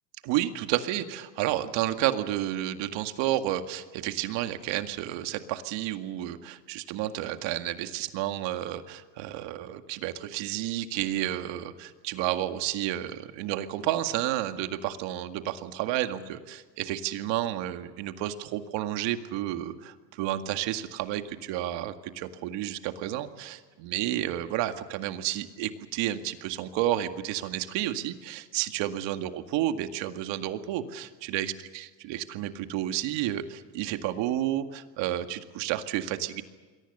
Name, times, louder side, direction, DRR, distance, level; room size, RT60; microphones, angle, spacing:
voice 1, 0.2-36.4, right 13 dB, 60° right, 8 dB, 2.1 m, -31 dB
28.0 x 22.5 x 6.8 m, 1.4 s
supercardioid pair, 115°, 50 cm